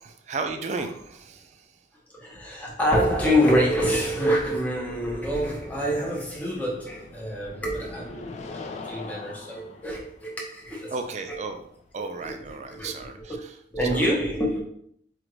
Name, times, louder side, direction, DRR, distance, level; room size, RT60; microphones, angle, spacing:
voice 1, 0.0-1.7 10.9-11.7 11.9-13.5 13.9-14.0, right 3 dB, 40° right, 0.4 m, -34 dB
voice 2, 2.1-10.9 11.3-11.4 12.0-13.3 13.7-14.6, equal, 10° left, 0.9 m, -26 dB
sound 1, 4.7-12.6, left 3 dB, 35° left, 0.4 m, -44 dB
4.9 x 2.5 x 3.1 m
head